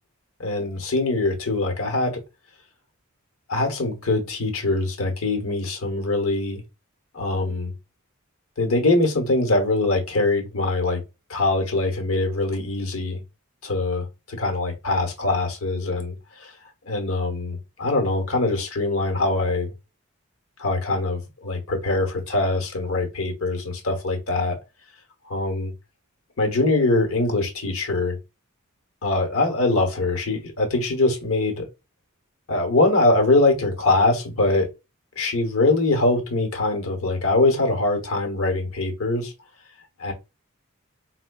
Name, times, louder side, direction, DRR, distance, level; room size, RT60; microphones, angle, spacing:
voice 1, 0.4-2.2 3.5-6.6 7.1-7.7 8.6-11.0 11.3-13.2 13.6-16.5 16.9-19.7 20.6-24.6 25.3-25.7 26.4-28.2 29.0-31.7 32.5-34.7 35.2-39.3 40.0-40.1, left 2 dB, 80° left, 1.0 m, -23 dB
4.3 x 2.2 x 2.2 m
head